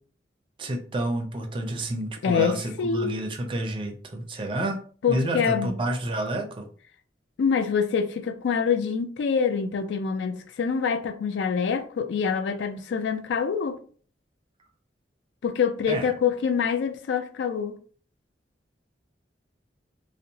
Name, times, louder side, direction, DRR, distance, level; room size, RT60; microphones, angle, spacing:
voice 1, 0.6-4.8 5.1-6.7 15.9-16.1, right 1 dB, 30° right, 0.4 m, -29 dB
voice 2, 2.2-3.2 5.0-5.7 7.4-13.8 15.4-17.8, left 6 dB, 85° left, 0.3 m, -25 dB
2.7 x 2.0 x 2.7 m
head